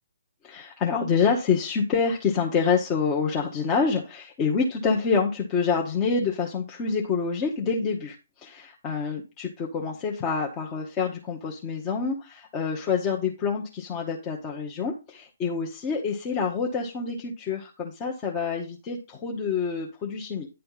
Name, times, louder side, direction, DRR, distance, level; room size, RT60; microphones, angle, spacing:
voice 1, 0.4-20.5, left 5 dB, 20° left, -1 dB, 1.0 m, -27 dB
10.0 x 3.4 x 5.5 m, 0.29 s
figure-of-eight pair, 130°, 0 cm